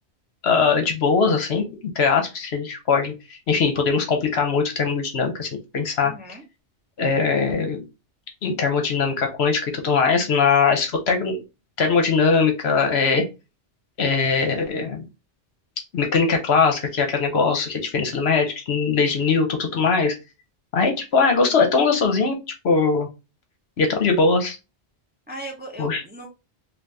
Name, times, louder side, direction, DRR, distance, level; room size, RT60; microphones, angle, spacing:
voice 1, 0.4-1.6 1.9-6.1 7.0-7.8 8.4-11.4 11.8-13.2 14.0-15.0 15.9-20.1 20.7-22.4 22.6-23.1 23.8-24.6 25.8-26.0, left 5 dB, 65° left, 4 dB, 1.0 m, -21 dB
voice 2, 6.0-6.4 25.3-26.3, right 1 dB, 10° right, 0 dB, 0.6 m, -37 dB
2.7 x 2.5 x 3.4 m, 0.27 s
omnidirectional pair, 1.2 m